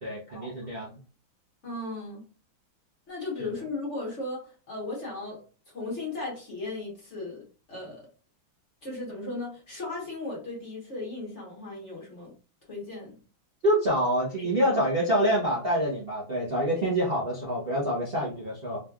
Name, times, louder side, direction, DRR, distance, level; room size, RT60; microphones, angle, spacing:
voice 1, 0.0-1.0 3.4-3.5 13.6-18.8, equal, 40° right, -7 dB, 0.9 m, -26 dB
voice 2, 1.6-2.2 3.1-5.4 5.7-7.4 7.7-8.1 8.8-12.3 12.7-13.2 14.4-14.7, left 2 dB, 40° left, -3 dB, 1.4 m, -36 dB
3.9 x 3.2 x 2.3 m, 0.37 s
omnidirectional pair, 2.2 m